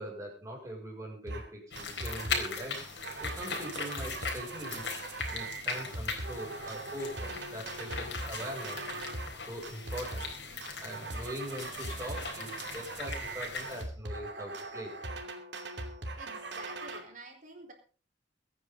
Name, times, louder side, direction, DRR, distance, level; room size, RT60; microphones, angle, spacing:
voice 1, 0.0-2.8 3.2-4.9 5.3-9.0 9.3-15.0, equal, 20° right, -1 dB, 6.5 m, -42 dB
sound 1, 1.3-1.5 1.8-2.5 2.7-9.3 9.6-10.4 10.6-17.0, right 2 dB, 85° right, 2.7 m, -40 dB
sound 2, 1.7-13.8, left 4 dB, 80° left, 4.1 m, -39 dB
voice 2, 15.8-17.7, right 3 dB, 50° right, 3 dB, 4.1 m, -50 dB
23.0 x 9.8 x 3.9 m, 0.37 s
head